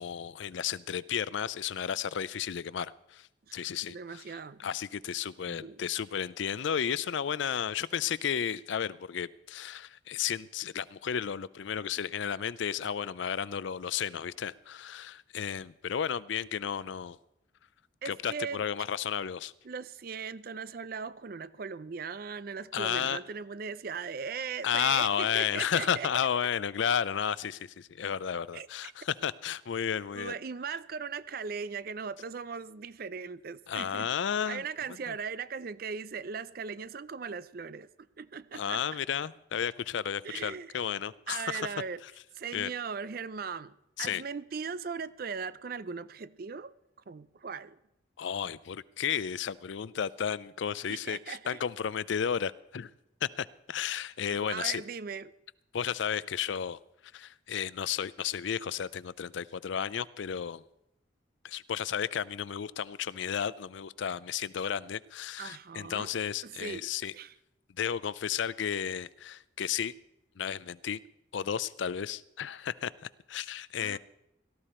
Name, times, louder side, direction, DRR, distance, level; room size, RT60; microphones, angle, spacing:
voice 1, 0.0-17.2 18.0-19.5 22.7-23.2 24.6-30.3 33.7-34.6 35.1-35.2 38.5-41.7 42.5-42.7 44.0-44.2 48.2-52.9 53.2-54.8 55.7-56.8 57.1-60.6 61.4-67.1 67.8-69.9 70.4-71.0 71.3-74.0, left 8 dB, 70° left, 0.4 m, -33 dB
voice 2, 3.9-4.7 5.5-5.8 18.0-18.6 19.6-26.1 28.5-28.7 30.1-34.1 34.5-37.9 38.2-38.8 40.2-40.7 41.3-42.0 42.3-46.7 47.1-47.8 50.9-51.6 54.3-55.3 65.4-66.1 66.4-67.3 73.8-74.0, right 5 dB, 50° right, 0.4 m, -39 dB
17.5 x 13.0 x 4.3 m
head